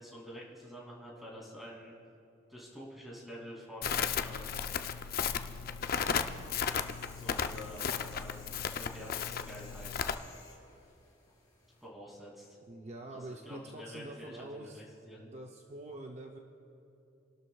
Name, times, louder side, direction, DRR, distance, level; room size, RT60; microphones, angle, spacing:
voice 1, 0.0-1.9 2.5-4.7 7.2-10.1 11.8-12.6 13.1-15.2, equal, ahead, -4 dB, 2.7 m, -48 dB
Crackle, 3.8-10.1, left 7 dB, 50° left, 0.5 m, -34 dB
sound 1, 5.9-11.8, left 3 dB, 20° left, 3.2 m, -58 dB
voice 2, 12.7-14.8 15.2-16.4, right 1 dB, 35° right, 2 dB, 0.6 m, -45 dB
29.0 x 12.0 x 2.3 m, 2.9 s
head